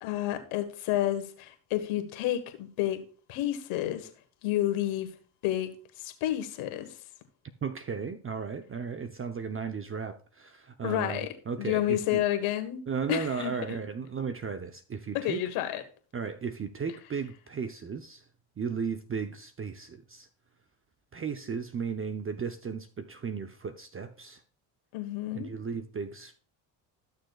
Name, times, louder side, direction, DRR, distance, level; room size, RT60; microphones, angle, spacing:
voice 1, 0.0-3.0 3.3-4.1 4.4-5.1 5.4-5.7 6.0-6.9 10.8-11.3 11.6-12.8 13.1-13.5 15.1-15.8 24.9-25.5, left 13 dB, 80° left, 1.5 m, -30 dB
voice 2, 7.6-12.2 12.9-15.4 16.1-18.3 18.6-20.3 21.1-24.4 25.3-26.4, right 6 dB, 25° right, 0.7 m, -35 dB
14.0 x 6.5 x 2.3 m
supercardioid pair, 70°, 49 cm